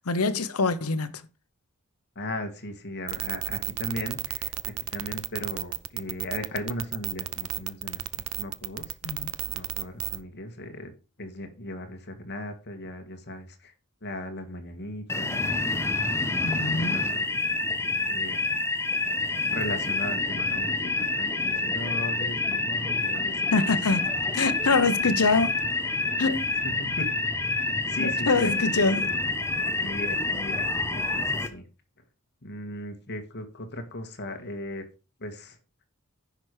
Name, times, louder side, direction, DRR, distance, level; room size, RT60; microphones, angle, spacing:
voice 1, 0.0-1.2 9.0-9.4 16.4-17.0 23.5-25.6 26.2-26.5 28.0-29.1, left 3 dB, 80° left, 1.0 m, -25 dB
voice 2, 2.2-8.1 8.4-9.0 9.5-10.9 11.2-13.7 14.0-15.9 16.3-17.4 18.1-18.6 19.5-23.8 26.6-27.1 27.9-28.8 29.8-31.7 32.4-34.8 35.2-35.6, left 1 dB, 50° left, 1.9 m, -37 dB
sound 1, 3.1-10.2, right 13 dB, 70° right, 0.7 m, -32 dB
sound 2, 15.1-31.5, left 3 dB, 10° left, 1.1 m, -28 dB
10.5 x 6.1 x 4.9 m
head